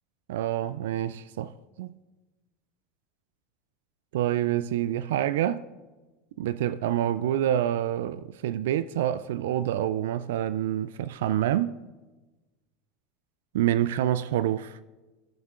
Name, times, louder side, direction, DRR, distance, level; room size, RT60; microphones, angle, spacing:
voice 1, 0.3-1.5 1.8-1.9 4.1-5.6 6.4-11.7 13.5-14.8, right 11 dB, 70° right, 0.3 m, -27 dB
23.0 x 8.9 x 2.5 m
hypercardioid pair, 80°, 0 cm